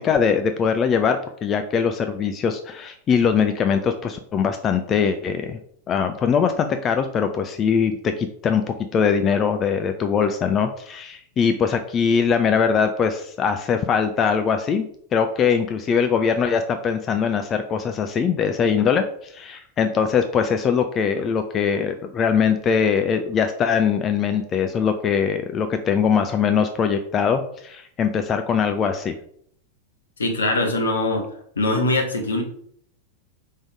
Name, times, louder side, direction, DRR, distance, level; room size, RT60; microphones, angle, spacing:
voice 1, 0.0-5.6 5.9-14.9 15.1-29.2, left 6 dB, 25° left, 7 dB, 0.5 m, -22 dB
voice 2, 30.2-31.2 31.6-32.4, left 2 dB, 70° left, 3 dB, 1.3 m, -22 dB
5.2 x 3.7 x 4.9 m, 0.65 s
figure-of-eight pair, 90°, 0 cm